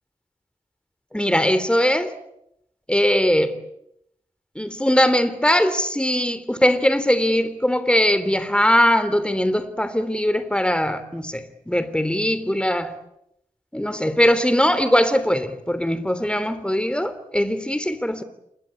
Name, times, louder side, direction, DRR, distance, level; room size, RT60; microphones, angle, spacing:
voice 1, 1.1-2.1 2.9-3.5 4.5-12.9 13.7-18.2, equal, 5° left, 3.3 m, -20 dB
28.0 x 22.5 x 8.6 m
wide cardioid pair, 60°, 14 cm